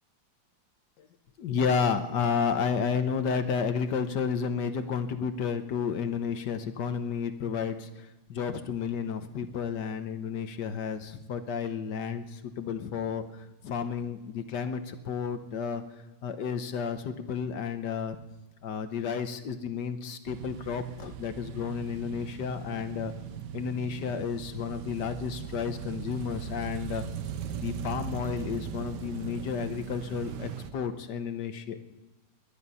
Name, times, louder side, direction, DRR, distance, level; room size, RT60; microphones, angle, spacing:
voice 1, 1.4-15.8 16.2-18.2 18.6-23.1 23.5-27.0 27.6-31.8, left 6 dB, 65° left, 9 dB, 1.6 m, -32 dB
sound 1, 20.3-30.7, right 8 dB, 65° right, 1.4 m, -39 dB
21.0 x 11.0 x 5.6 m, 1.0 s
omnidirectional pair, 2.1 m